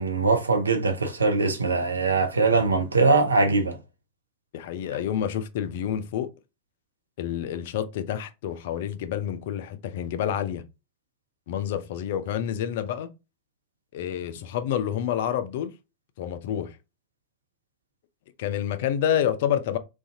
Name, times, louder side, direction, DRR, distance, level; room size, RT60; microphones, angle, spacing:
voice 1, 0.0-3.8, right 3 dB, 75° right, 0.5 m, -22 dB
voice 2, 4.5-6.3 7.2-10.6 11.5-13.1 13.9-15.7 16.2-16.8 18.4-19.8, left 9 dB, 55° left, 0.3 m, -28 dB
2.5 x 2.3 x 2.6 m
figure-of-eight pair, 90°, 0 cm